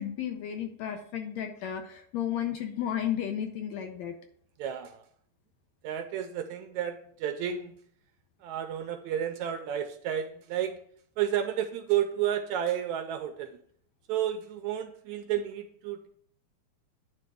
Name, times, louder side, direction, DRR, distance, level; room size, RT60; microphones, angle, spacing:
voice 1, 0.0-4.2, left 10 dB, 75° left, 5 dB, 1.8 m, -33 dB
voice 2, 4.6-5.0 5.8-7.7 8.4-10.8 11.2-13.6 14.1-16.1, right 10 dB, 75° right, 7 dB, 1.8 m, -31 dB
9.6 x 3.4 x 6.2 m, 0.63 s
omnidirectional pair, 3.6 m